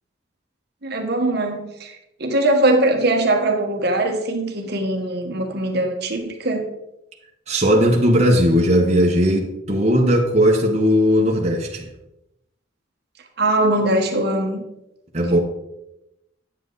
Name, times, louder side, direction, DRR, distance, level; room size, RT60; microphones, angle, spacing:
voice 1, 0.8-6.7 13.4-14.6, right 1 dB, 55° right, 3 dB, 1.3 m, -21 dB
voice 2, 7.5-11.9 15.1-15.4, equal, 35° right, -1 dB, 1.2 m, -17 dB
9.6 x 7.5 x 4.0 m, 0.88 s
head